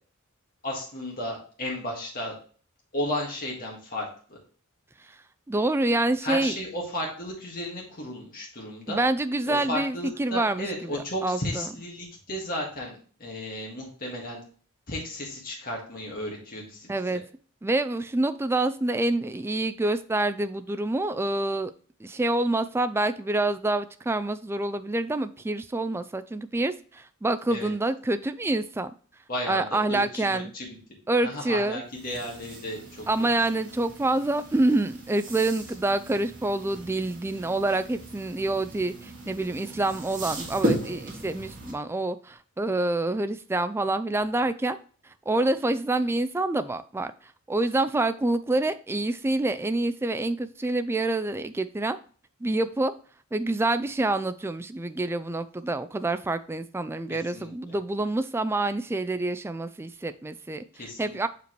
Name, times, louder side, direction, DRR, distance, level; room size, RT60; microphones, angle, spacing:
voice 1, 0.6-2.3 2.9-4.4 6.2-9.0 9.4-14.4 14.9-17.2 27.5-27.7 29.3-30.8 31.2-33.3 57.1-57.7 60.8-61.2, left 1 dB, 45° left, -3 dB, 1.8 m, -34 dB
voice 2, 5.5-6.5 8.9-11.7 16.9-17.2 17.6-21.7 22.0-28.9 29.5-30.5 31.1-31.8 33.1-44.8 45.0-52.0 52.4-52.9 53.3-60.6 61.0-61.3, right 2 dB, 10° right, 10 dB, 0.3 m, -27 dB
sound 1, 31.9-41.7, equal, 40° right, 2.0 m, -36 dB
6.6 x 5.0 x 3.1 m, 0.42 s
head